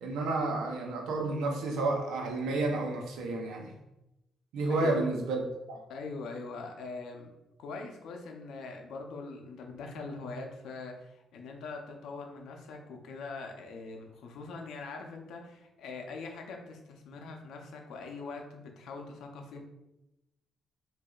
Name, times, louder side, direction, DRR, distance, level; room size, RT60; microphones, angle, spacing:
voice 1, 0.0-3.7 4.5-5.4 5.7-5.8, right 2 dB, 85° right, 2 dB, 0.7 m, -31 dB
voice 2, 5.9-7.3 7.6-19.6, left 3 dB, 80° left, 3 dB, 0.7 m, -42 dB
4.9 x 2.7 x 2.4 m, 0.92 s
cardioid pair, 90°, 0 cm